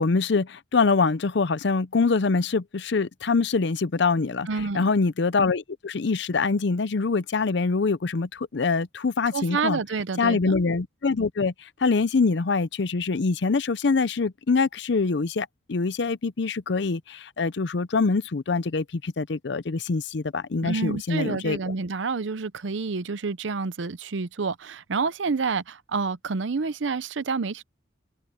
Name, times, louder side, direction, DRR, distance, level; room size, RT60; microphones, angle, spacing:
voice 1, 0.0-4.5 4.7-9.8 10.2-21.6, left 4 dB, 60° left, 0.6 m, -24 dB
voice 2, 4.5-4.8 9.3-10.5 20.6-27.6, right 4 dB, 70° right, 0.6 m, -28 dB
head